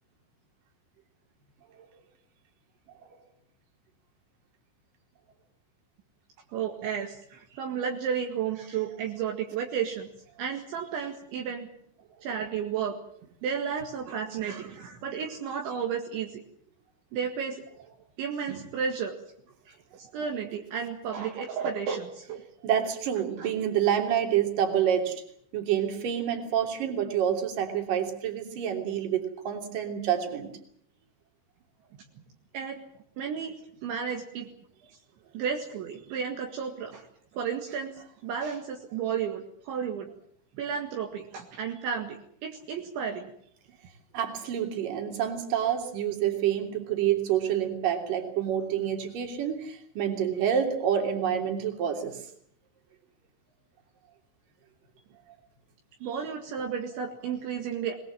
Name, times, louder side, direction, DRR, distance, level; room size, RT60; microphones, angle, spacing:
voice 1, 6.5-10.1 10.4-11.7 12.2-13.0 13.4-16.4 17.1-17.6 18.2-19.1 19.7-22.4 23.4-23.5 32.5-32.8 33.2-33.5 33.8-34.5 35.3-37.1 37.3-37.9 38.2-40.1 40.6-42.2 42.4-43.3 56.0-58.0, right 7 dB, 70° right, 2 dB, 4.0 m, -32 dB
voice 2, 22.6-25.2 25.5-30.5 44.1-52.2, right 9 dB, 45° right, 4 dB, 4.3 m, -28 dB
23.0 x 20.5 x 7.8 m, 0.66 s
omnidirectional pair, 5.8 m